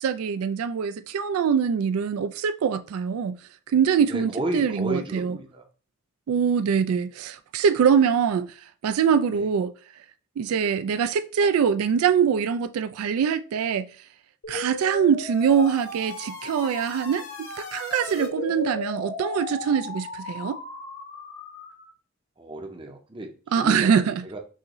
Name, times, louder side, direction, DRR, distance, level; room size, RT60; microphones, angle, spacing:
voice 1, 0.0-3.4 3.7-5.4 6.3-8.5 8.8-9.7 10.4-13.9 14.5-20.6 23.5-24.2, right 7 dB, 90° right, 0.3 m, -23 dB
voice 2, 4.1-5.6 9.3-9.5 22.4-24.4, right 1 dB, 25° right, 0.6 m, -33 dB
sound 1, 14.4-21.9, left 2 dB, 70° left, 1.2 m, -36 dB
6.1 x 2.5 x 3.0 m
head